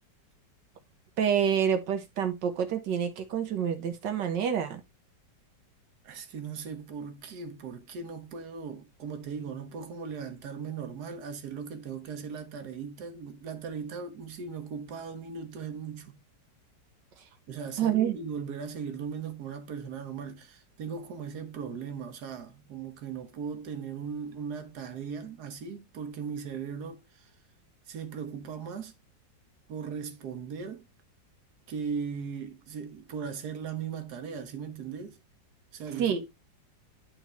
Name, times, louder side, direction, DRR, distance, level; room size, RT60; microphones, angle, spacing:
voice 1, 1.2-4.8 17.8-18.2 36.0-36.2, right 8 dB, 85° right, 1.8 m, -27 dB
voice 2, 6.0-16.2 17.5-27.2 27.9-28.9 29.7-30.9 31.7-35.2 35.7-36.3, right 6 dB, 65° right, 1.5 m, -38 dB
11.0 x 3.9 x 3.1 m
omnidirectional pair, 1.9 m